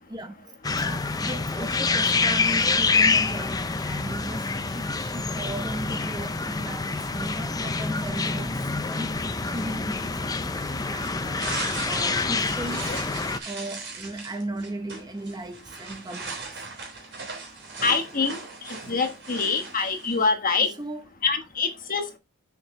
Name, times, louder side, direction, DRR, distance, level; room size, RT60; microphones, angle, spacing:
voice 1, 0.1-0.5 0.8-13.0 13.4-16.7 20.6-21.1, right 1 dB, 20° right, 0.8 m, -37 dB
sound 1, 0.6-13.4, left 4 dB, 15° left, 0.5 m, -26 dB
sound 2, 10.4-20.3, right 4 dB, 55° right, 3.3 m, -38 dB
voice 2, 17.8-18.4 18.9-20.7 21.2-22.2, left 4 dB, 40° left, 1.3 m, -25 dB
7.0 x 6.1 x 3.2 m
head